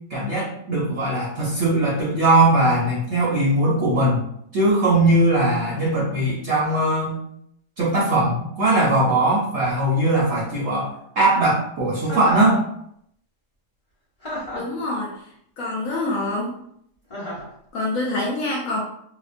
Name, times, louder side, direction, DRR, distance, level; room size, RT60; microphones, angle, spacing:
voice 1, 0.1-4.3 4.5-7.2 7.8-12.6, right 2 dB, 65° right, -4 dB, 0.7 m, -20 dB
Chuckle chortle, 12.0-12.6 14.2-14.8 17.1-17.5, equal, 25° left, 0.8 m, -32 dB
voice 2, 14.5-15.2 15.6-16.6 17.7-18.8, left 2 dB, 70° left, -3 dB, 0.8 m, -26 dB
2.8 x 2.0 x 2.4 m, 0.72 s
omnidirectional pair, 1.8 m